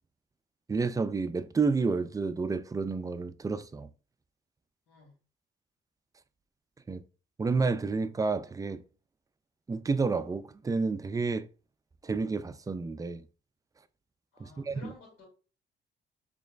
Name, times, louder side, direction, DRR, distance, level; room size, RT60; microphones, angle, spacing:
voice 1, 0.7-3.9 6.9-7.0 7.4-8.8 9.7-11.5 12.0-13.2 14.4-14.9, right 4 dB, 20° right, 0.3 m, -30 dB
voice 2, 4.9-5.2 14.3-15.3, left 4 dB, 80° left, 2.1 m, -52 dB
4.3 x 3.2 x 2.4 m
cardioid pair, 90°, 20 cm